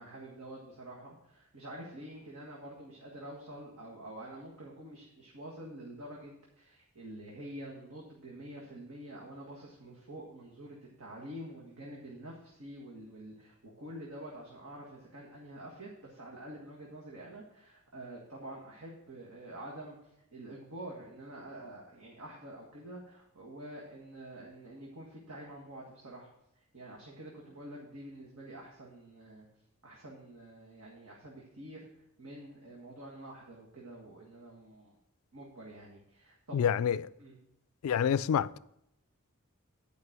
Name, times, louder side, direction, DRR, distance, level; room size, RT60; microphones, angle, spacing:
voice 1, 0.0-26.3 26.5-29.5 29.8-31.9 32.2-35.0 35.3-36.6 37.2-37.4, right 1 dB, 70° right, 1.7 m, -47 dB
voice 2, 36.5-37.0 37.8-38.6, left 8 dB, 70° left, 0.3 m, -27 dB
9.7 x 5.2 x 6.2 m
head